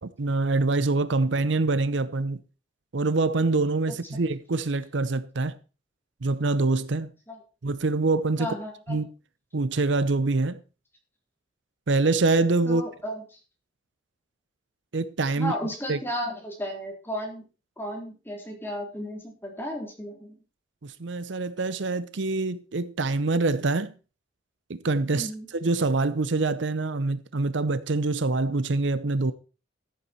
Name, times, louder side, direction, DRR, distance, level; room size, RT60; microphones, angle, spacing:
voice 1, 0.0-2.4 2.9-5.5 6.2-7.1 7.6-8.5 8.9-9.1 9.5-10.6 11.9-12.8 14.9-15.5 15.9-16.0 20.8-23.9 24.7-25.3 25.6-29.3, right 3 dB, 70° right, 0.7 m, -25 dB
voice 2, 8.4-9.0 12.7-13.2 15.4-17.4 17.8-20.4 25.1-25.5, equal, 10° left, 3.5 m, -34 dB
14.0 x 8.4 x 4.4 m
head